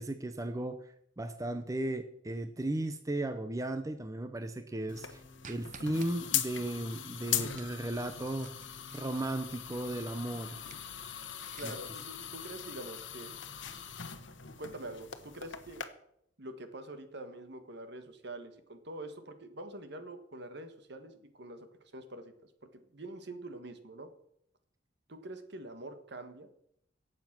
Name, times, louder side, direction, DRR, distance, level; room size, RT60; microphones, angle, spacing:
voice 1, 0.0-8.5 8.9-10.6 11.6-11.7, right 1 dB, 15° right, 9 dB, 0.6 m, -36 dB
sound 1, 4.9-15.9, left 10 dB, 65° left, 1.1 m, -40 dB
sound 2, 4.9-10.3, left 3 dB, 30° left, 1.6 m, -57 dB
sound 3, 5.4-6.1 7.5-9.4 10.5-11.9, right 6 dB, 40° right, 0.9 m, -54 dB
voice 2, 11.6-13.3 14.6-15.8 16.4-21.7 21.9-24.1 25.1-26.5, right 1 dB, 60° right, 9 dB, 1.5 m, -45 dB
17.5 x 7.5 x 6.0 m, 0.73 s
head